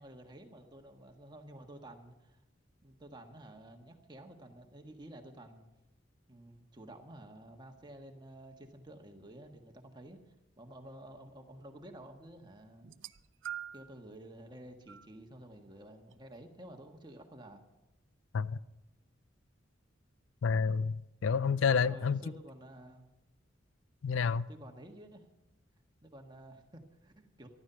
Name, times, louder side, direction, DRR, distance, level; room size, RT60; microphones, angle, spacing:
voice 1, 0.0-2.4 2.8-5.7 6.3-10.2 10.6-12.9 13.7-17.6 20.7-20.9 21.8-23.1 24.5-25.3 26.0-27.5, right 1 dB, 25° right, 1.5 m, -51 dB
sound 1, 12.8-14.0 14.9-15.1 16.1-16.2, right 10 dB, 75° right, 0.5 m, -44 dB
voice 2, 20.4-21.0 21.2-22.2 24.0-24.5, left 5 dB, 80° left, 0.4 m, -29 dB
14.0 x 12.5 x 5.7 m
head